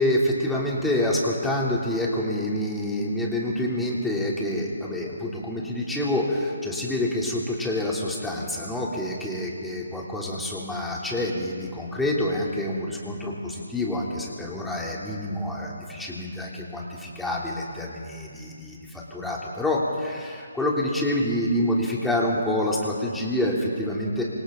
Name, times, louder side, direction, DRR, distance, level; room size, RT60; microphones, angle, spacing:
voice 1, 0.0-24.2, left 1 dB, 5° left, -4 dB, 3.4 m, -27 dB
26.5 x 25.0 x 4.0 m, 2.2 s
figure-of-eight pair, 145°, 0 cm